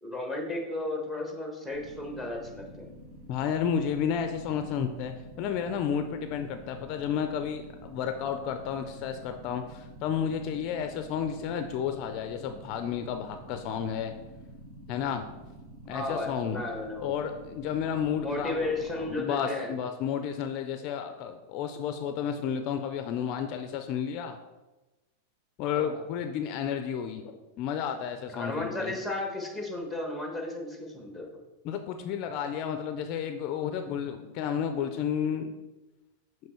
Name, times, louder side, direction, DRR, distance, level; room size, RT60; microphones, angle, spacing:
voice 1, 0.0-2.9 15.9-17.1 18.2-19.7 25.7-26.0 28.3-31.3, left 2 dB, 5° right, 0 dB, 1.3 m, -34 dB
sound 1, 1.7-19.2, equal, 30° right, 1.3 m, -48 dB
voice 2, 3.3-14.1 14.9-15.2 15.9-16.6 17.0-24.4 25.6-29.0 31.6-35.5, left 8 dB, 45° left, 7 dB, 0.4 m, -32 dB
7.3 x 3.1 x 4.4 m, 1.1 s
supercardioid pair, 135°, 0 cm